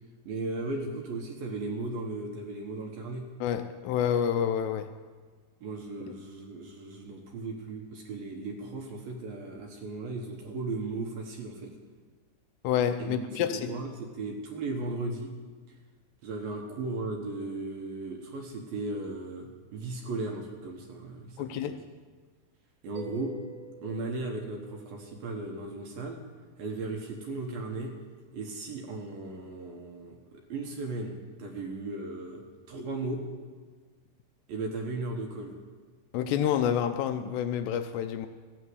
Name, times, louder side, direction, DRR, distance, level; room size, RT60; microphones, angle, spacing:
voice 1, 0.3-3.3 5.6-11.7 13.0-15.3 16.2-21.8 22.8-23.3 23.8-26.2 26.6-27.9 28.3-33.2 34.5-35.6, right 3 dB, 65° right, 1 dB, 2.7 m, -36 dB
voice 2, 3.4-4.9 12.6-13.7 21.4-21.8 36.1-38.3, left 9 dB, 80° left, 9 dB, 2.6 m, -28 dB
Mallet percussion, 22.9-26.4, right 6 dB, 15° right, 1.4 m, -51 dB
14.5 x 9.1 x 7.9 m, 1.5 s
omnidirectional pair, 5.1 m